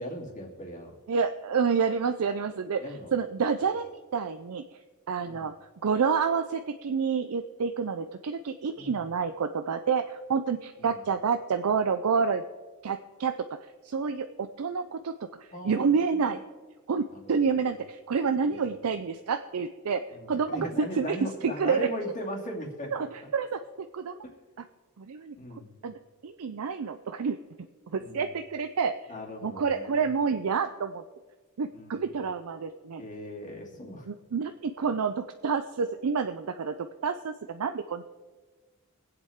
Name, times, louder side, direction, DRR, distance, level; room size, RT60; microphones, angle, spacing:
voice 1, 0.0-0.9 2.8-3.1 5.3-5.4 8.8-9.0 10.8-11.0 15.5-16.4 17.1-17.2 18.5-18.7 20.1-22.9 25.4-25.7 28.0-28.3 29.1-30.1 31.7-32.1 33.0-34.1, equal, 35° left, -1 dB, 2.6 m, -38 dB
voice 2, 1.1-2.8 3.1-4.8 5.1-5.5 5.8-12.4 12.8-13.4 13.8-15.1 15.4-16.4 16.9-20.0 20.3-21.9 22.9-23.6 23.9-24.2 25.0-25.4 25.8-27.4 27.9-29.0 29.4-31.0 31.6-33.0 34.1-38.0, right 5 dB, 80° right, 8 dB, 0.5 m, -28 dB
24.0 x 8.0 x 3.6 m, 1.3 s
head